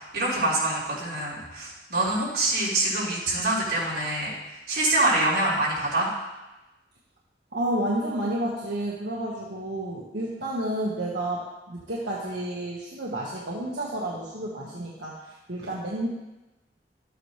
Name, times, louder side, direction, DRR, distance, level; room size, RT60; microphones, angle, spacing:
voice 1, 0.0-6.1, right 2 dB, 70° right, -7 dB, 4.2 m, -25 dB
voice 2, 7.5-16.1, right 1 dB, 85° right, -5 dB, 1.6 m, -30 dB
12.5 x 8.9 x 3.3 m, 1.0 s
head